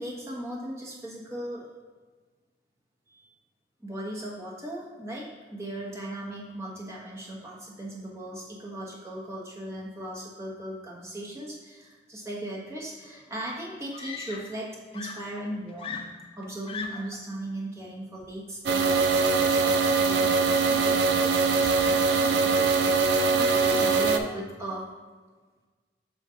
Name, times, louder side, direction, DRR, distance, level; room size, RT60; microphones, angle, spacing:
voice 1, 0.0-1.7 3.1-3.3 3.8-24.9, right 1 dB, 15° right, -4 dB, 1.1 m, -38 dB
Screaming, 13.1-13.2 13.9-14.7 14.9-17.2 18.2-18.5, left 5 dB, 30° left, 0.4 m, -39 dB
sound 1, 18.7-24.2, right 4 dB, 80° right, 0.5 m, -22 dB
7.6 x 2.5 x 5.5 m, 1.4 s
head